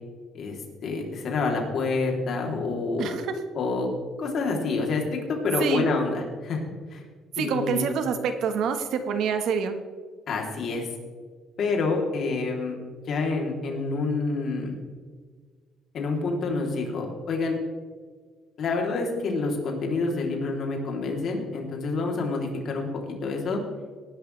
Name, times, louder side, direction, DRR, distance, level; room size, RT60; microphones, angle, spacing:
voice 1, 0.3-3.3 3.6-3.9 4.2-6.6 6.9-7.0 7.4-7.9 10.3-10.9 11.6-12.8 13.1-14.7 15.9-17.6 18.6-23.6, left 3 dB, 50° left, 1 dB, 3.3 m, -27 dB
voice 2, 7.4-9.7, right 6 dB, 65° right, 8 dB, 1.5 m, -26 dB
19.0 x 11.5 x 3.4 m, 1.5 s
cardioid pair, 145°, 0 cm